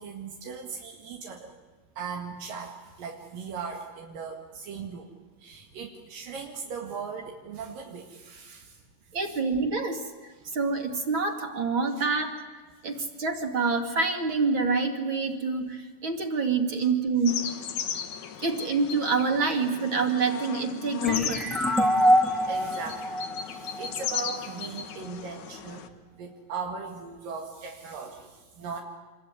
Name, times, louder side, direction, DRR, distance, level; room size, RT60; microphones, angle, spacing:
voice 1, 0.0-1.6 2.0-5.1 5.4-8.8 9.2-9.4 12.0-12.1 12.9-13.1 22.5-23.2 23.4-25.9 26.2-28.8, right 5 dB, 80° right, 1 dB, 3.7 m, -38 dB
voice 2, 9.1-12.4 12.8-17.4 18.4-21.6, right 4 dB, 40° right, 4 dB, 2.7 m, -27 dB
sound 1, 17.2-25.9, left 9 dB, 65° left, 2.6 m, -35 dB
sound 2, 21.0-24.5, equal, ahead, 1.7 m, -25 dB
27.0 x 22.0 x 9.6 m, 1.4 s
omnidirectional pair, 3.8 m